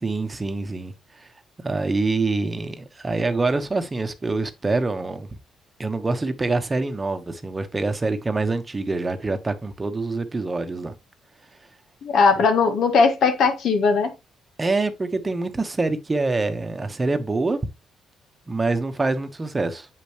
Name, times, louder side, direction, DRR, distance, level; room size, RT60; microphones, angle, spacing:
voice 1, 0.0-1.3 1.6-5.3 5.8-10.9 12.4-12.5 14.6-17.6 18.5-19.9, right 3 dB, 25° right, 1.0 m, -25 dB
voice 2, 12.0-14.1, left 4 dB, 70° left, 1.8 m, -19 dB
7.5 x 5.2 x 3.0 m
cardioid pair, 90°, 0 cm